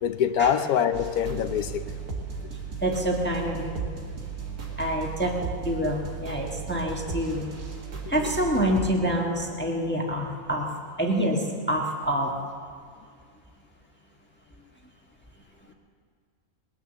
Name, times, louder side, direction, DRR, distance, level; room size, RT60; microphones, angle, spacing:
voice 1, 0.0-1.8 8.2-8.3, left 8 dB, 75° left, 10 dB, 1.2 m, -24 dB
sound 1, 0.9-8.9, right 5 dB, 80° right, 2.3 m, -36 dB
voice 2, 2.8-3.9 4.8-7.4 8.1-10.7 11.0-12.3, equal, 5° left, 0 dB, 1.4 m, -27 dB
20.5 x 9.7 x 7.2 m, 2.1 s
omnidirectional pair, 1.6 m